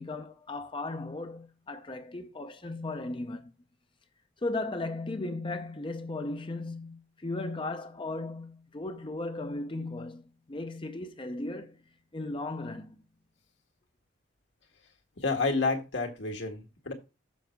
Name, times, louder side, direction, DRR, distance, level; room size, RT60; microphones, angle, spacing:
voice 1, 0.0-3.5 4.4-11.8 12.1-13.0, left 2 dB, 25° left, 0.6 m, -36 dB
voice 2, 15.2-16.9, left 3 dB, 70° left, 1.9 m, -30 dB
7.2 x 6.3 x 4.5 m
head